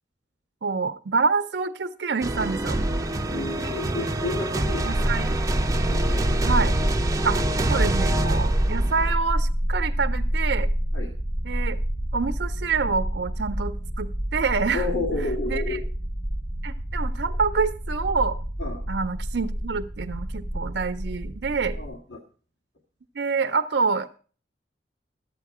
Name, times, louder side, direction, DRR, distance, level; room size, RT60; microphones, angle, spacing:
voice 1, 0.6-2.8 4.8-5.3 6.4-6.7 7.2-7.4 7.7-10.7 11.4-11.8 12.1-14.9 15.5-15.8 16.6-18.4 18.9-21.8 23.2-24.2, right 5 dB, 65° right, 9 dB, 0.5 m, -27 dB
sound 1, 2.2-9.2, right 1 dB, 20° right, 0.6 m, -25 dB
voice 2, 3.3-5.1 5.9-6.3 10.9-11.1 14.7-15.8 18.6-18.8 21.7-22.2, left 3 dB, 90° left, -1 dB, 1.6 m, -31 dB
sound 2, 4.9-21.8, equal, 65° left, 3.1 m, -28 dB
12.0 x 8.0 x 4.8 m, 0.40 s
head